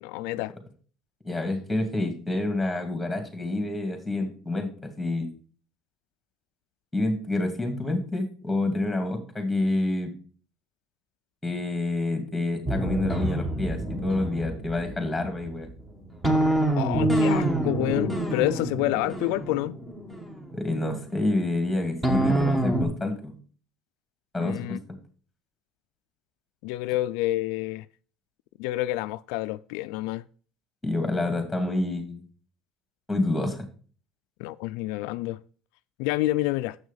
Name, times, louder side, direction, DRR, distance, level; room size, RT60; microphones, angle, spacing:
voice 1, 0.0-0.5 16.8-19.8 24.4-24.8 26.6-27.8 28.6-30.2 34.4-35.4 36.0-36.8, left 17 dB, 80° left, 0.3 m, -28 dB
voice 2, 1.2-5.3 6.9-10.1 11.4-15.7 20.5-23.3 24.3-24.8 30.8-32.2 33.1-33.6, left 2 dB, 5° left, 2.3 m, -28 dB
sound 1, 12.7-20.9 22.0-22.8, right 1 dB, 10° right, 1.5 m, -26 dB
7.3 x 6.2 x 5.5 m
cardioid pair, 130°, 0 cm